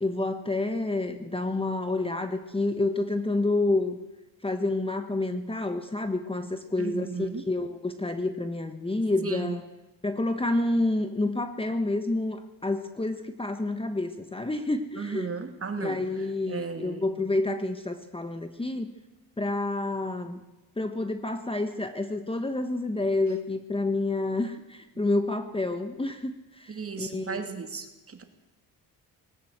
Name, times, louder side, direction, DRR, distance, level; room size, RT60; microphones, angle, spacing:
voice 1, 0.0-4.0 4.4-9.6 10.0-15.3 15.8-18.9 19.4-20.4 20.8-27.4, left 2 dB, 15° left, 8 dB, 1.4 m, -29 dB
voice 2, 6.8-7.4 9.2-9.6 15.0-16.0 16.5-17.0 26.7-28.2, right 5 dB, 35° right, 6 dB, 2.6 m, -35 dB
19.5 x 18.5 x 8.1 m, 1.0 s
cardioid pair, 125°, 38 cm